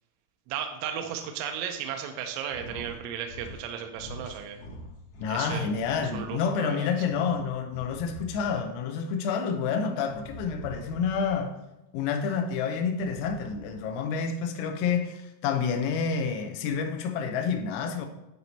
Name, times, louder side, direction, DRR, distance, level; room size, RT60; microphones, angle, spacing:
voice 1, 0.5-4.6 5.3-5.7 6.1-6.9, right 8 dB, 85° right, 2.7 m, -35 dB
sound 1, 2.4-3.0 3.2-3.7 3.9-6.3 6.7-8.7 10.0-11.4 12.9-13.9, left 1 dB, 65° left, 2.2 m, -45 dB
voice 2, 5.2-11.6 11.9-18.1, left 6 dB, 90° left, 3.4 m, -29 dB
11.5 x 4.2 x 2.7 m
omnidirectional pair, 6.0 m